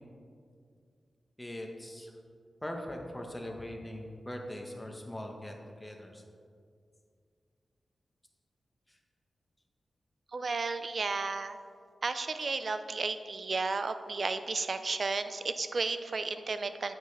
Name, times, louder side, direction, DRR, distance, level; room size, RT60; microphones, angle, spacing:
voice 1, 1.4-2.1 2.6-5.5 5.8-6.2, left 1 dB, 15° left, 2 dB, 1.1 m, -41 dB
voice 2, 10.3-11.6 12.0-16.9, right 4 dB, 50° right, 10 dB, 0.4 m, -33 dB
8.8 x 7.7 x 3.3 m, 2.3 s
wide cardioid pair, 95°, 0 cm